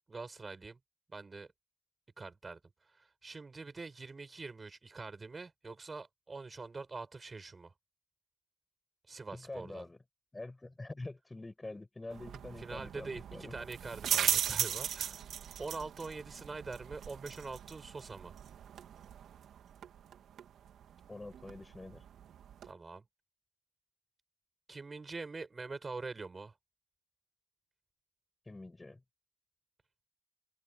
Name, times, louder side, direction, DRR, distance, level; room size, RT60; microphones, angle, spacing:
voice 1, 0.1-0.8 1.1-1.5 2.2-7.7 9.1-9.8 12.6-15.3 15.6-18.4 22.6-23.0 24.7-26.6, right 3 dB, 30° right, 6.6 m, -44 dB
voice 2, 9.3-10.0 10.3-13.5 21.1-22.0 28.5-29.0, left 2 dB, 15° left, 6.8 m, -46 dB
sound 1, 12.1-22.7, right 9 dB, 70° right, 3.1 m, -38 dB
open air
cardioid pair, 90°, 0 cm